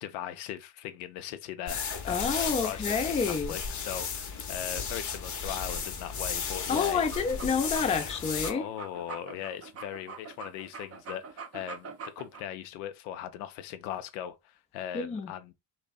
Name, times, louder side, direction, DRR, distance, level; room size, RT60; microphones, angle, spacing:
voice 1, 0.0-7.0 8.5-15.5, left 10 dB, 80° left, 0.5 m, -39 dB
sound 1, 1.7-8.5, left 6 dB, 40° left, 0.7 m, -35 dB
voice 2, 2.1-3.5 6.7-8.7 14.9-15.3, left 5 dB, 15° left, 0.3 m, -28 dB
sound 2, 6.9-12.4, right 5 dB, 35° right, 0.5 m, -43 dB
2.5 x 2.1 x 2.3 m
supercardioid pair, 75°, 45 cm